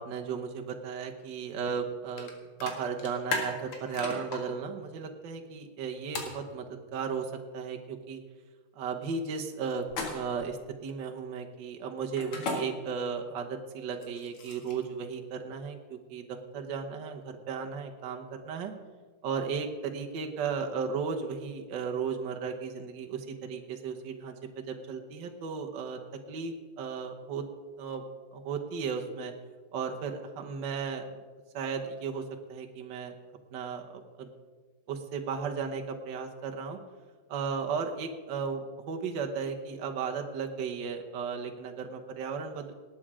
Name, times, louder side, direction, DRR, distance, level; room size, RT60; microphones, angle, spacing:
voice 1, 0.0-2.3 2.6-8.2 8.7-18.7 19.2-26.0 26.3-27.4 27.8-28.0 28.3-29.3 29.7-31.2 31.5-32.2 32.5-33.1 33.5-34.3 34.9-36.8 37.3-42.7, right 6 dB, 60° right, 3 dB, 1.7 m, -35 dB
sound 1, 2.2-2.3 2.6-4.4 6.1-6.4 9.9-10.4 12.2-12.6 13.9-14.8, left 4 dB, 90° left, 2.8 m, -35 dB
18.5 x 8.8 x 5.0 m, 1.4 s
omnidirectional pair, 2.3 m